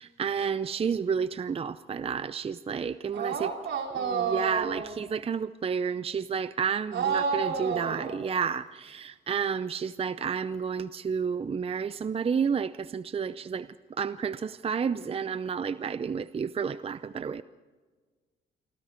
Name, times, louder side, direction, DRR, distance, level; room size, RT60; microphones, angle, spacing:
voice 1, 0.0-3.5 4.1-13.7 14.0-17.4, right 6 dB, 30° right, 0.5 m, -30 dB
voice 2, 3.1-5.0 6.9-8.3, right 6 dB, 70° right, 4.6 m, -30 dB
27.0 x 24.0 x 4.5 m
cardioid pair, 90°, 20 cm